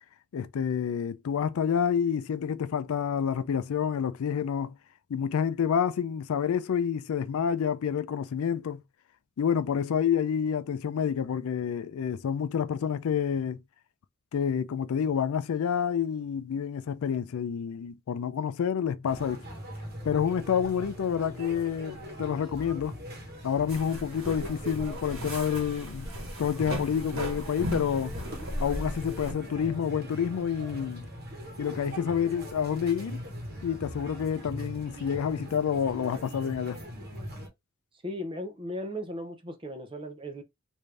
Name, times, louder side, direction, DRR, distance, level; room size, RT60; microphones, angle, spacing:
voice 1, 0.3-4.7 5.1-8.8 9.4-13.6 14.3-19.4 20.0-23.0 23.4-26.1 26.4-28.1 28.6-31.1 31.6-33.2 33.6-36.8, left 7 dB, 80° left, 0.4 m, -28 dB
sound 1, 19.1-37.5, equal, 45° right, 1.1 m, -41 dB
sound 2, 23.7-29.3, equal, 80° right, 1.4 m, -37 dB
voice 2, 38.0-40.4, equal, 25° right, 0.5 m, -36 dB
3.3 x 2.6 x 3.2 m
head